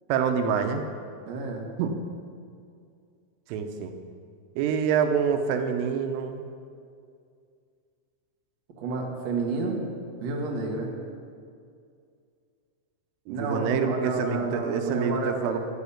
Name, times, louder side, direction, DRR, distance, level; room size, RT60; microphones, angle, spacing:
voice 1, 0.1-0.8 1.8-1.9 3.5-3.9 4.6-6.5 13.3-15.6, right 7 dB, 80° right, 6 dB, 3.3 m, -26 dB
voice 2, 1.3-1.7 8.8-9.8 10.2-10.9 13.3-15.6, right 3 dB, 60° right, 0 dB, 1.7 m, -30 dB
14.0 x 7.3 x 8.5 m, 2.3 s
omnidirectional pair, 5.9 m